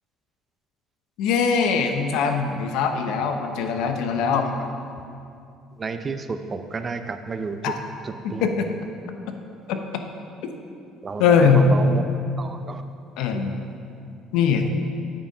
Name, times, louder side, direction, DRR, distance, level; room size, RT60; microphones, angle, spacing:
voice 1, 1.2-4.5 7.6-7.7 8.2-8.7 9.7-9.8 11.2-11.7 13.2-13.5 14.3-14.6, left 6 dB, 80° left, 6 dB, 0.8 m, -21 dB
voice 2, 5.8-7.8 8.0-8.6 11.0-12.0 12.4-12.8, right 4 dB, 30° right, 8 dB, 0.5 m, -31 dB
8.8 x 6.7 x 5.4 m, 2.5 s
cardioid pair, 120°, 0 cm